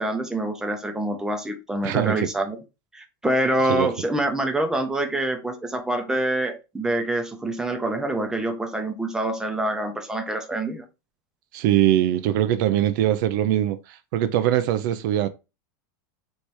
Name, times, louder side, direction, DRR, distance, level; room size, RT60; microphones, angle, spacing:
voice 1, 0.0-2.6 2.9-10.8, right 1 dB, 5° right, 0.6 m, -26 dB
voice 2, 1.8-2.3 3.7-3.9 11.5-15.3, right 12 dB, 60° right, 0.5 m, -22 dB
3.3 x 3.1 x 4.2 m
supercardioid pair, 145°, 12 cm